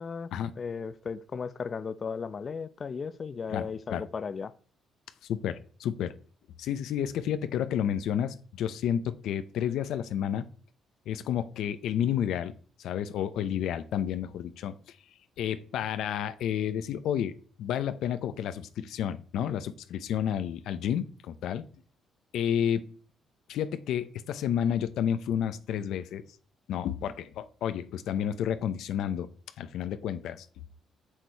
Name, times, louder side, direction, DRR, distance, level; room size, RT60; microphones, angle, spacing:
voice 1, 0.6-4.5, left 5 dB, 40° left, 0.7 m, -35 dB
voice 2, 3.5-4.0 5.3-6.1 6.6-10.5 11.1-12.5 12.8-15.0 15.4-21.6 22.3-22.9 23.5-26.2 26.7-29.3 29.6-30.5, left 9 dB, 80° left, 0.8 m, -31 dB
7.4 x 6.5 x 4.6 m
cardioid pair, 90°, 0 cm